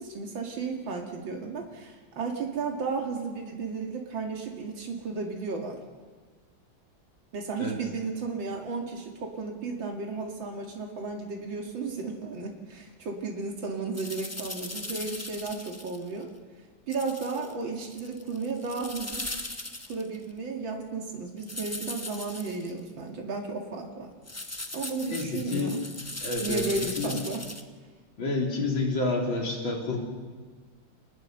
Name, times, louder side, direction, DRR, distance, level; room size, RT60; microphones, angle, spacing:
voice 1, 0.0-5.8 7.3-16.3 16.9-19.3 19.9-24.1 24.7-25.8 26.4-27.4, right 4 dB, 85° right, 1 dB, 2.9 m, -34 dB
sound 1, 13.9-16.1 16.9-17.5 17.8-20.2 21.4-22.7 24.3-27.6, left 2 dB, 15° left, 0.5 m, -38 dB
voice 2, 25.1-25.7 26.2-26.6 27.0-27.2 28.2-30.0, left 3 dB, 85° left, 0 dB, 4.0 m, -29 dB
26.5 x 19.5 x 6.7 m, 1.4 s
omnidirectional pair, 2.1 m